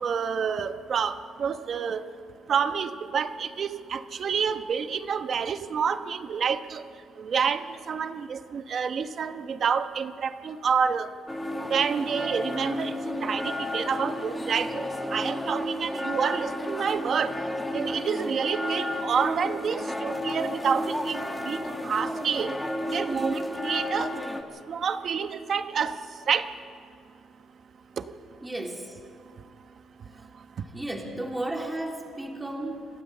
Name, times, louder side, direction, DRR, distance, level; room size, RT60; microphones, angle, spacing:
voice 1, 0.0-2.0 2.5-6.8 7.2-11.1 11.7-12.9 13.2-14.8 15.1-17.3 17.7-22.5 22.9-24.1 24.7-26.0 26.3-26.5 28.0-28.1, right 6 dB, 45° right, 9 dB, 1.0 m, -28 dB
sound 1, 11.3-24.4, left 1 dB, 10° left, 1.5 m, -32 dB
voice 2, 28.4-29.0 30.1-30.2 30.6-32.9, right 1 dB, 10° right, 0 dB, 2.9 m, -34 dB
27.0 x 13.0 x 7.9 m, 2.3 s
cardioid pair, 140°, 0 cm